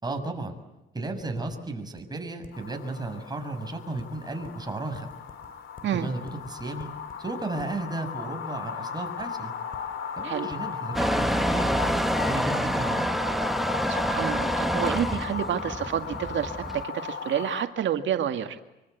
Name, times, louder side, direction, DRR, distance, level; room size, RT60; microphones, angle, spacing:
voice 1, 0.0-0.6 0.9-5.1 5.9-6.9 7.2-9.5 10.2-13.1, right 2 dB, 20° right, 5 dB, 6.5 m, -34 dB
sound 1, 1.2-1.6 2.0-2.1 2.4-2.5 4.0-4.5 4.9-5.5 5.8-5.9 6.2-7.1 7.6-7.7 9.2-9.3 9.7-9.8 10.2-10.6 10.9-11.0 11.4-12.3 12.7-12.8, left 4 dB, 45° left, 5.3 m, -48 dB
sound 2, 2.5-17.6, left 7 dB, 80° left, 4.2 m, -36 dB
Motor vehicle (road) / Engine starting / Accelerating revving vroom, 10.9-16.8, equal, ahead, 1.4 m, -27 dB
voice 2, 13.9-18.7, right 9 dB, 70° right, 7 dB, 2.1 m, -29 dB
26.0 x 25.0 x 8.3 m, 0.98 s
cardioid pair, 90°, 20 cm